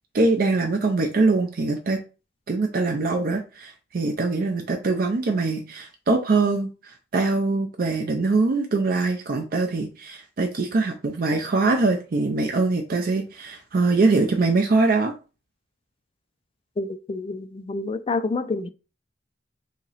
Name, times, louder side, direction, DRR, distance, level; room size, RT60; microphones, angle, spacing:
voice 1, 0.1-2.0 2.5-15.1, right 3 dB, 50° right, 0.5 m, -23 dB
voice 2, 16.8-18.7, left 3 dB, 30° left, 0.3 m, -28 dB
2.9 x 2.8 x 3.9 m
head